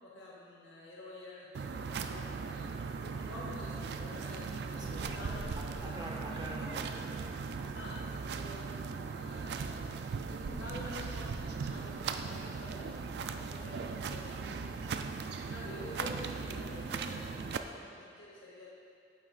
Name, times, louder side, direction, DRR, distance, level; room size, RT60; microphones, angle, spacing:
voice 1, 0.0-6.0 7.7-14.7 15.5-18.7, left 1 dB, 85° left, -4 dB, 0.9 m, -48 dB
sound 1, 1.5-17.6, right 5 dB, 65° right, 0.3 m, -38 dB
voice 2, 4.7-8.2 15.7-16.0, right 1 dB, 20° right, -2 dB, 0.8 m, -47 dB
sound 2, 12.2-17.6, left 1 dB, 10° left, 1.7 m, -55 dB
8.6 x 7.3 x 2.4 m, 2.5 s
head